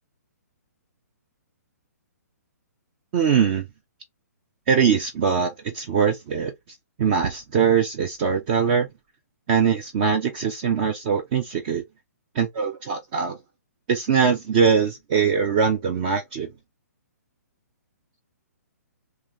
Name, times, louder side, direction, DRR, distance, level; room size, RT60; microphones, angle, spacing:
voice 1, 3.1-3.7 4.7-6.5 7.0-8.9 9.5-11.8 12.3-13.4 13.9-16.5, right 6 dB, 35° right, 0.7 m, -22 dB
3.4 x 2.9 x 3.1 m
figure-of-eight pair, 125°, 9 cm